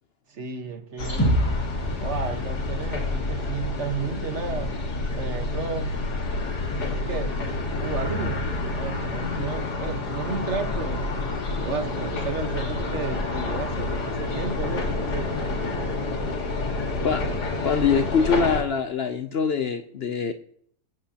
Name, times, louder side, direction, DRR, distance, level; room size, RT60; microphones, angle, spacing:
voice 1, 0.3-1.3 2.0-4.7 5.1-5.9 6.8-7.4 7.8-8.4 8.7-11.1 11.6-15.3, right 5 dB, 45° right, 6 dB, 1.5 m, -32 dB
sound 1, 1.0-18.6, left 2 dB, 75° left, 2.3 m, -28 dB
sound 2, 1.2-5.1, equal, 15° left, 5.4 m, -29 dB
voice 2, 17.6-20.3, left 6 dB, 60° left, 8 dB, 0.6 m, -23 dB
23.5 x 8.2 x 2.9 m, 0.66 s
omnidirectional pair, 1.7 m